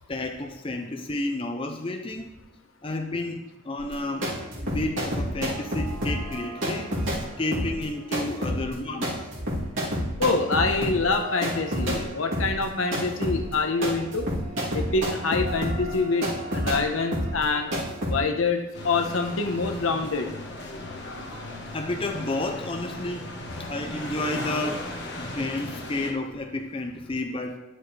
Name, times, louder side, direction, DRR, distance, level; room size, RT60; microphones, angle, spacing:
voice 1, 0.1-2.3 2.8-4.3 4.6-9.1 21.7-23.3 23.7-27.6, left 2 dB, 25° left, 4 dB, 0.6 m, -31 dB
sound 1, 3.8-12.0 12.3-18.2, equal, 65° right, 2.9 m, -29 dB
voice 2, 10.2-14.3 14.7-16.3 16.5-17.7 18.1-20.3 24.3-24.4, left 3 dB, 80° left, 5 dB, 1.0 m, -25 dB
sound 2, 18.7-26.1, left 2 dB, 55° left, 1.5 m, -37 dB
11.5 x 6.6 x 3.3 m, 0.99 s
head